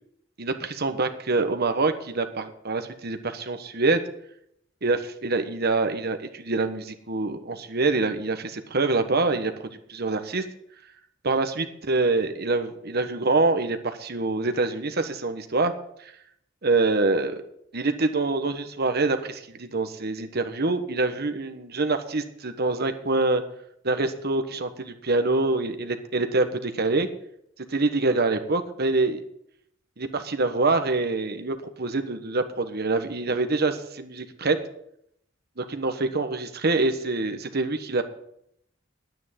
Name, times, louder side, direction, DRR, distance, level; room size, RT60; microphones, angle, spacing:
voice 1, 0.4-4.0 4.8-9.5 9.9-10.4 11.2-15.7 16.6-17.4 17.7-23.4 23.8-27.1 27.7-29.2 30.0-34.6 35.6-38.0, right 3 dB, 55° right, 8 dB, 1.3 m, -25 dB
10.5 x 9.2 x 7.4 m, 0.74 s
head